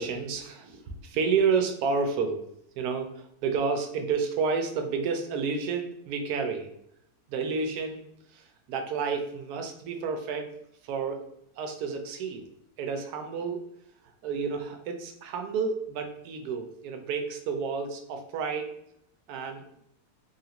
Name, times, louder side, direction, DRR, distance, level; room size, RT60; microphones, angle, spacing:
voice 1, 0.0-2.4 2.8-6.7 7.3-8.0 8.3-10.5 10.8-11.2 11.6-12.5 12.8-13.6 14.2-18.7 19.3-19.6, right 5 dB, 80° right, 5 dB, 1.1 m, -30 dB
3.3 x 2.4 x 2.8 m, 0.74 s
omnidirectional pair, 1.6 m